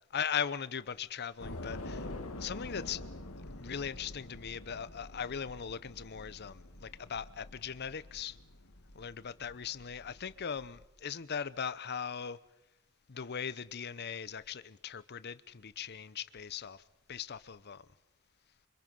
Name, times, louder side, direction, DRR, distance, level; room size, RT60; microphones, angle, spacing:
voice 1, 0.1-2.1 2.4-3.0 3.6-8.4 8.9-12.4 13.1-16.8 17.1-17.8, left 7 dB, 50° left, 0.7 m, -39 dB
Train / Subway metro underground, 1.4-10.8, left 2 dB, 90° left, 1.9 m, -47 dB
28.5 x 25.0 x 5.4 m
head